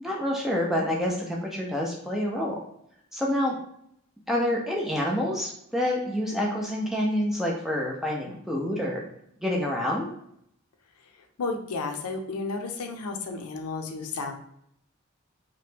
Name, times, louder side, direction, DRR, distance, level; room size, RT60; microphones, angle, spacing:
voice 1, 0.0-2.6 3.1-3.6 4.3-9.0 9.4-10.1, left 1 dB, ahead, -3 dB, 0.3 m, -27 dB
voice 2, 11.4-14.3, left 3 dB, 90° left, 5 dB, 0.5 m, -32 dB
2.9 x 2.1 x 3.2 m, 0.74 s
head